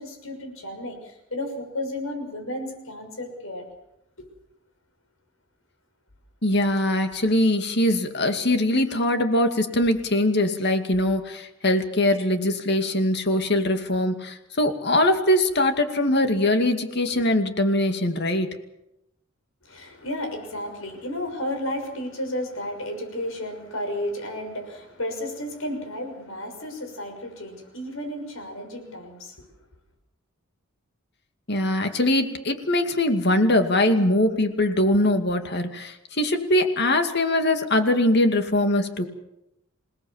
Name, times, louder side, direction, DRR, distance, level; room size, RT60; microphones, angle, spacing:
voice 1, 0.0-3.7 4.2-4.3 17.1-17.2 19.6-29.5, left 1 dB, 75° left, 5 dB, 6.4 m, -33 dB
voice 2, 6.4-18.5 31.5-39.1, left 1 dB, 55° left, 6 dB, 2.4 m, -22 dB
27.5 x 18.5 x 7.3 m, 0.87 s
head